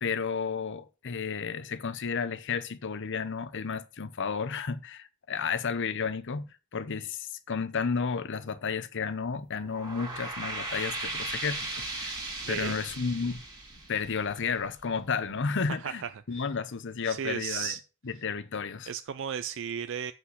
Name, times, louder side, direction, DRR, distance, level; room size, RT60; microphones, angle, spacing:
voice 1, 0.0-6.5 6.7-12.1 12.5-13.4 13.9-16.0 16.3-17.8 18.0-18.9, left 5 dB, 60° left, 0.8 m, -32 dB
sound 1, 9.6-14.8, right 2 dB, 20° right, 2.3 m, -37 dB
voice 2, 12.4-12.8 15.8-16.4 17.0-17.8 18.9-20.1, right 8 dB, 60° right, 0.4 m, -35 dB
8.0 x 6.0 x 5.8 m
head